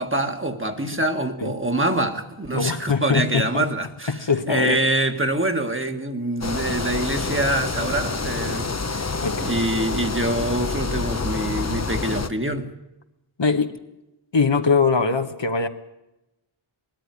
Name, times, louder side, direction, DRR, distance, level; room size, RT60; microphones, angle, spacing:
voice 1, 0.0-9.1 9.4-12.7, right 1 dB, 25° right, 1.8 m, -25 dB
voice 2, 2.5-3.7 4.1-4.8 9.1-9.5 13.4-13.7 14.3-15.7, left 5 dB, 60° left, 1.3 m, -22 dB
sound 1, 6.4-12.3, left 4 dB, 30° left, 0.9 m, -27 dB
19.5 x 13.5 x 9.7 m
wide cardioid pair, 50°, 50 cm